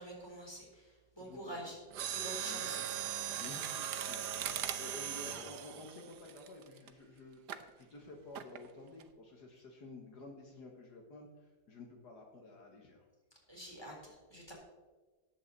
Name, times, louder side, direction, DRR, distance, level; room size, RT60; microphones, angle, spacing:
voice 1, 0.0-1.8 2.1-2.8 13.5-14.5, right 1 dB, 15° left, -2 dB, 3.9 m, -47 dB
voice 2, 1.2-1.7 2.4-2.9 3.4-13.1, left 2 dB, 70° left, 1 dB, 2.1 m, -52 dB
Mechanisms, 1.9-6.9 7.5-7.7 8.4-8.7 9.0-9.1, right 10 dB, 75° right, 1.4 m, -39 dB
18.5 x 7.8 x 4.1 m, 1.3 s
omnidirectional pair, 1.8 m